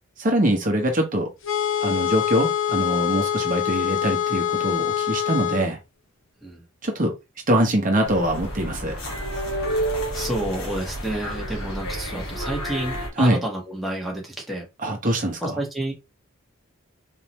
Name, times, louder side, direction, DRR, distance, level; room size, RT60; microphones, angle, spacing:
voice 1, 0.2-1.3 1.8-5.8 6.8-7.1 7.5-8.9 13.2-13.4 14.8-15.6, right 1 dB, 40° right, 1.0 m, -23 dB
sound 1, 1.4-5.6, left 10 dB, 65° left, 0.9 m, -24 dB
sound 2, 8.0-13.1, right 1 dB, 85° left, 1.9 m, -30 dB
voice 2, 10.1-14.7 15.4-15.9, right 1 dB, ahead, 1.3 m, -30 dB
4.2 x 3.8 x 3.1 m
head